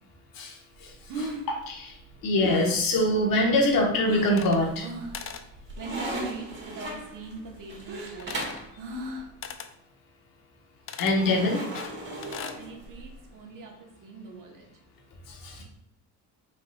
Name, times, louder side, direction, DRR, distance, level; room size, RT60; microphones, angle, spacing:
voice 1, 0.3-2.0 2.2-4.9 11.0-11.6 15.3-15.6, left 1 dB, 65° left, 0 dB, 1.3 m, -25 dB
Breathing, 0.8-4.4 4.8-5.3 5.5-6.5 6.9-9.4, right 2 dB, 75° right, 1.3 m, -37 dB
sound 1, 4.0-4.6 5.0-8.7 11.1-13.2, right 1 dB, 30° right, 1.6 m, -37 dB
sound 2, 4.2-4.9 5.1-5.5 8.2-8.7 9.4-9.7 10.9-11.2 11.7-12.6, left 7 dB, 40° left, 0.4 m, -40 dB
voice 2, 5.8-8.5 12.5-14.7, right 4 dB, 60° right, 1 dB, 1.3 m, -42 dB
5.3 x 3.7 x 2.4 m, 0.79 s
cardioid pair, 90°, 36 cm